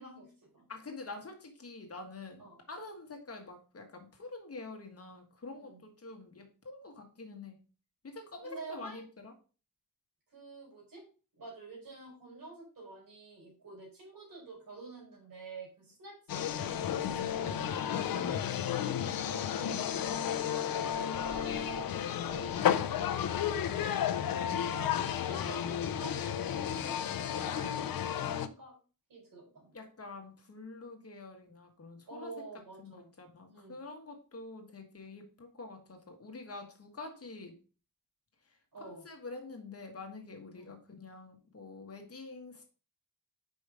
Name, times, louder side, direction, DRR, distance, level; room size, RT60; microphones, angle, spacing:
voice 1, 0.0-0.7 2.4-2.6 5.5-5.8 8.4-9.0 10.3-11.0 11.3-17.6 17.9-19.8 20.3-24.2 24.6-28.8 29.1-29.8 32.1-33.1 33.4-33.8 38.7-39.0 40.5-40.8, right 2 dB, 70° right, -1 dB, 4.0 m, -49 dB
voice 2, 0.7-7.6 8.0-9.3 29.7-32.3 32.8-37.6 38.8-42.7, left 3 dB, 45° left, 3 dB, 1.6 m, -47 dB
sound 1, 16.3-28.5, left 9 dB, 80° left, 0.6 m, -32 dB
5.3 x 5.3 x 4.8 m, 0.36 s
wide cardioid pair, 145°, 34 cm